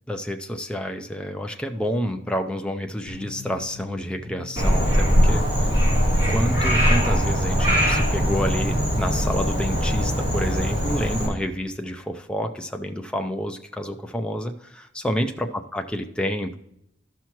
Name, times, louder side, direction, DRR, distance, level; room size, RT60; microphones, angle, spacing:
voice 1, 0.1-5.7 6.3-16.6, equal, 5° left, 4 dB, 0.5 m, -29 dB
sound 1, 3.1-8.7, right 3 dB, 80° right, 2.3 m, -35 dB
Frog, 4.6-11.3, equal, 15° right, 3.8 m, -21 dB
13.5 x 5.8 x 3.0 m, 0.80 s
head